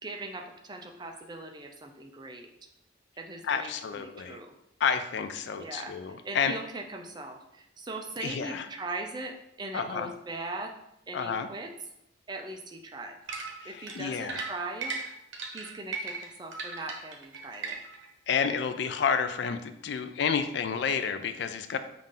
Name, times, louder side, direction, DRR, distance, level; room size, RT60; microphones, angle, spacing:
voice 1, 0.0-2.5 3.2-4.5 5.6-5.9 6.2-10.7 11.1-11.7 12.3-13.2 13.6-15.0 15.5-17.8, right 2 dB, 20° right, 3 dB, 0.4 m, -40 dB
voice 2, 3.4-4.4 4.8-6.5 8.2-8.7 9.7-10.1 11.1-11.5 13.6-14.4 18.3-21.8, left 6 dB, 60° left, 10 dB, 0.3 m, -30 dB
sound 1, 13.3-18.1, right 4 dB, 75° right, 0.8 m, -37 dB
5.6 x 2.5 x 3.7 m, 0.82 s
head